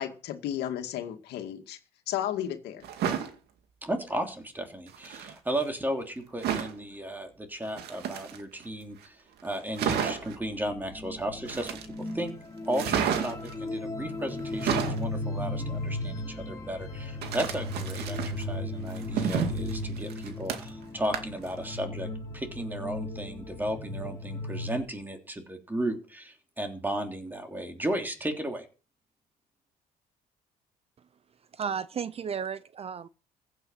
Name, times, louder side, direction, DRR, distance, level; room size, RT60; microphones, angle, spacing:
voice 1, 0.0-1.8 2.1-2.8, left 11 dB, 80° left, 2.2 m, -33 dB
sound 1, 2.8-3.3 4.9-5.3 6.4-6.8 7.7-8.6 9.1-9.2 9.4-9.5 9.7-10.4 11.5-12.1 12.7-13.5 14.4-15.0 17.2-18.4 18.9-20.8 21.1-21.5 21.8-21.9, right 8 dB, 75° right, 2.3 m, -31 dB
voice 2, 3.8-12.3 12.7-22.1 22.3-28.7, right 1 dB, 10° right, 3.3 m, -34 dB
sound 2, 10.2-24.8, left 1 dB, 20° left, 3.3 m, -36 dB
voice 3, 31.5-33.1, right 7 dB, 35° right, 0.6 m, -33 dB
15.5 x 8.9 x 5.7 m
cardioid pair, 110°, 17 cm